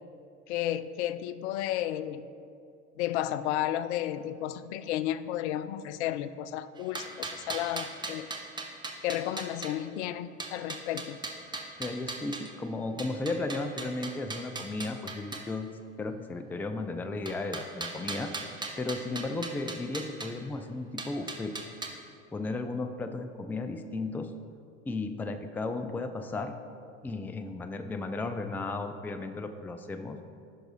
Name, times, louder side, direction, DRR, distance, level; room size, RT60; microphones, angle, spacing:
voice 1, 0.5-2.3 3.0-8.3 9.0-11.2, left 12 dB, 65° left, 14 dB, 0.5 m, -32 dB
sound 1, 6.8-9.7 10.4-12.5 13.0-15.5 17.3-20.3 21.0-21.9, right 3 dB, 10° right, 1.0 m, -39 dB
voice 2, 11.8-15.7 16.0-18.3 18.8-21.6 22.3-24.3 24.9-26.5 27.0-30.2, left 3 dB, 5° left, 8 dB, 0.4 m, -34 dB
15.5 x 6.0 x 2.6 m, 2.5 s
hypercardioid pair, 75°, 37 cm